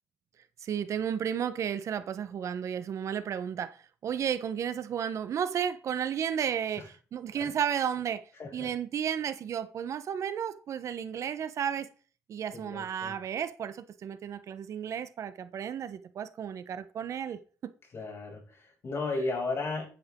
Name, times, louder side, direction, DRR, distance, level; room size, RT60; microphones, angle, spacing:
voice 1, 0.6-3.8 4.0-8.2 8.5-11.9 12.3-17.4, right 8 dB, 65° right, 1.1 m, -33 dB
voice 2, 8.4-8.7 12.5-13.2 17.9-19.9, left 3 dB, 50° left, 7.0 m, -34 dB
11.0 x 10.0 x 3.8 m
cardioid pair, 75°, 6 cm